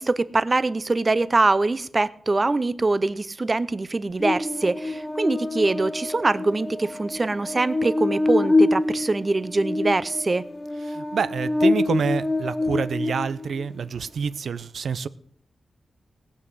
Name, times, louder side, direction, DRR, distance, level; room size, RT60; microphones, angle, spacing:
voice 1, 0.0-10.4, right 3 dB, 30° right, 0.6 m, -23 dB
Buzz, 4.2-13.7, left 2 dB, 15° left, 1.7 m, -26 dB
voice 2, 10.9-15.1, right 6 dB, 80° right, 0.6 m, -27 dB
18.0 x 6.1 x 7.7 m
wide cardioid pair, 115°, 0 cm